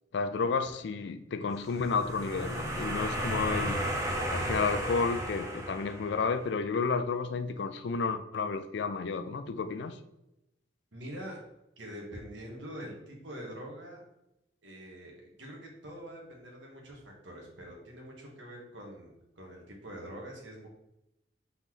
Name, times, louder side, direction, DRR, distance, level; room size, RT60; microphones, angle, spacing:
voice 1, 0.1-3.8 4.3-10.0, left 4 dB, 70° left, 10 dB, 0.4 m, -31 dB
sound 1, 1.7-6.4, right 1 dB, 15° right, 0.6 m, -34 dB
voice 2, 10.9-11.4 11.8-14.0 14.6-20.7, equal, 85° right, -1 dB, 1.3 m, -45 dB
4.0 x 3.0 x 3.8 m, 0.87 s
head